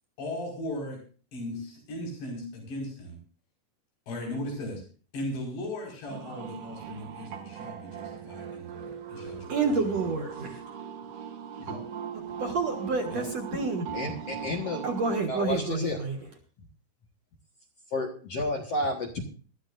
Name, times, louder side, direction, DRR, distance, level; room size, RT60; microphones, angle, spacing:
voice 1, 0.2-1.0 1.3-3.2 4.1-4.8 5.1-9.5 9.8-9.9 11.6-11.8 13.1-13.2, left 1 dB, 90° left, -1 dB, 7.4 m, -37 dB
sound 1, 6.1-15.2, right 7 dB, 80° right, 1.4 m, -40 dB
voice 2, 9.3-10.6 12.4-13.9 14.8-16.2, right 4 dB, 55° right, 3 dB, 2.0 m, -29 dB
voice 3, 13.9-14.8 15.3-16.0 17.9-19.2, left 2 dB, 60° left, 2 dB, 1.8 m, -31 dB
22.0 x 13.5 x 2.6 m, 0.39 s
omnidirectional pair, 4.8 m